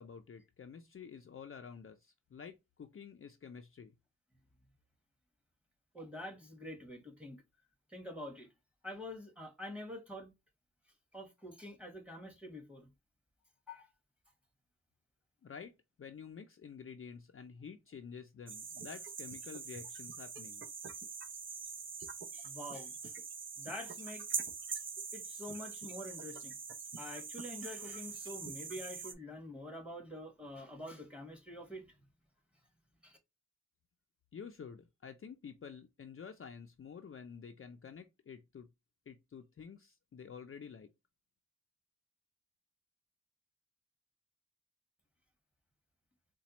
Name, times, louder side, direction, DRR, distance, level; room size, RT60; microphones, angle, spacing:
voice 1, 0.0-3.9 15.4-20.6 34.3-38.7 39.1-40.9, left 6 dB, 45° left, 0.5 m, -50 dB
voice 2, 5.9-7.4 7.9-8.5 8.8-10.3 11.1-12.9 13.7-13.9 22.3-23.1 23.6-24.2 25.1-26.5 27.0-32.0 33.0-33.2, left 1 dB, 5° right, 1.2 m, -46 dB
sound 1, 18.5-29.1, right 5 dB, 40° right, 0.5 m, -43 dB
4.1 x 2.2 x 2.8 m
wide cardioid pair, 85°, 30 cm